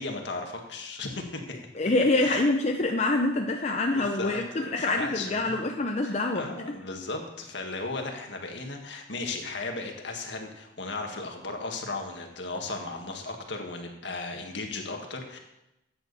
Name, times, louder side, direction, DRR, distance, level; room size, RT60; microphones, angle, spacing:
voice 1, 0.0-1.4 2.2-2.4 3.9-5.6 6.0-15.4, left 3 dB, 65° left, 2 dB, 1.8 m, -36 dB
voice 2, 1.8-6.8, left 2 dB, 35° left, 3 dB, 0.6 m, -26 dB
13.5 x 9.0 x 4.1 m, 0.91 s
head